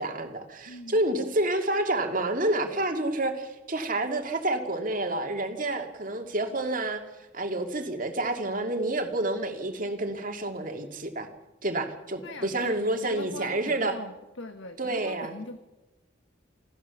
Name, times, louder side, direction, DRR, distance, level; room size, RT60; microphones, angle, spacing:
voice 1, 0.0-7.0 7.3-11.3 11.6-14.0 14.8-15.3, right 1 dB, 40° right, 4 dB, 2.4 m, -29 dB
voice 2, 0.7-1.0 12.2-15.6, left 2 dB, 70° left, 7 dB, 1.5 m, -41 dB
28.5 x 14.0 x 7.1 m, 1.0 s
head